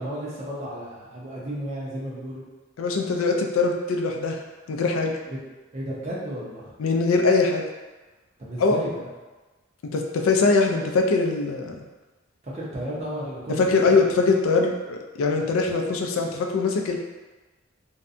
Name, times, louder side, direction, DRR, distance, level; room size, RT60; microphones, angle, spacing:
voice 1, 0.0-2.4 5.2-5.4 5.7-6.6 8.4-9.1 12.4-13.9, right 1 dB, 30° right, -6 dB, 0.5 m, -33 dB
voice 2, 2.8-4.4 4.7-5.1 6.8-7.6 8.6-8.9 9.8-11.8 13.5-17.0, left 3 dB, 85° left, 2 dB, 0.3 m, -22 dB
2.6 x 2.2 x 2.5 m, 1.2 s
head